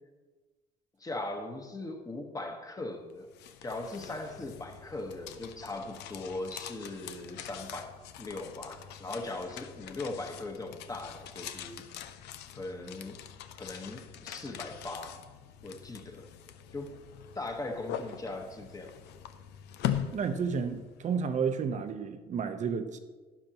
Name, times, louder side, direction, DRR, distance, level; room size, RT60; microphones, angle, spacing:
voice 1, 1.0-3.3 3.6-11.8 12.5-13.2 13.6-15.2 15.6-16.3 16.7-17.0 17.3-18.9, left 2 dB, 20° left, 4 dB, 1.3 m, -39 dB
sound 1, 3.1-21.1, left 10 dB, 80° left, 0.6 m, -42 dB
voice 2, 20.1-23.0, right 6 dB, 45° right, 8 dB, 0.8 m, -31 dB
12.0 x 10.5 x 3.0 m, 1.3 s
cardioid pair, 110°, 17 cm